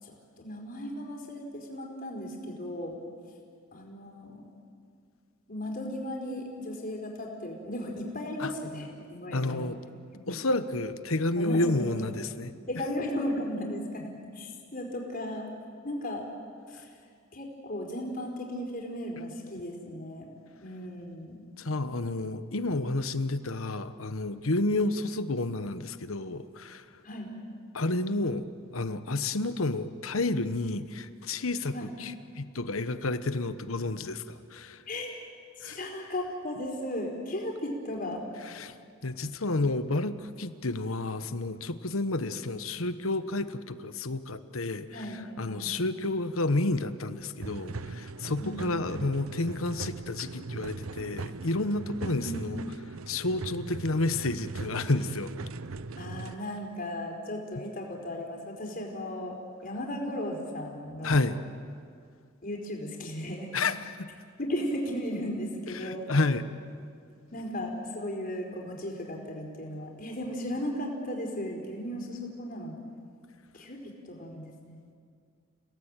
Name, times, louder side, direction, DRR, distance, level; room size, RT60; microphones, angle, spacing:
voice 1, 0.0-3.0 3.7-4.4 5.5-9.7 10.1-10.4 11.4-11.9 12.7-15.5 15.8-16.3 16.7-17.0 17.3-20.3 20.6-21.4 27.0-27.4 31.7-31.9 34.9-35.1 35.6-38.2 44.9-45.8 48.4-48.9 52.1-52.4 56.0-59.4 59.6-61.2 62.4-63.5 64.4-66.1 67.3-72.7 73.5-74.8, left 1 dB, 45° left, 1 dB, 4.7 m, -36 dB
voice 2, 9.3-9.8 10.3-12.5 21.6-26.9 27.7-28.5 28.7-31.7 32.0-34.8 35.6-35.8 38.5-38.8 39.0-45.0 45.4-52.6 53.1-55.3 61.0-61.4 63.5-64.1 65.7-66.4, left 2 dB, 85° left, 11 dB, 1.2 m, -30 dB
sound 1, 47.4-56.4, right 3 dB, 90° right, 0.8 m, -40 dB
29.5 x 18.0 x 9.1 m, 2.2 s
head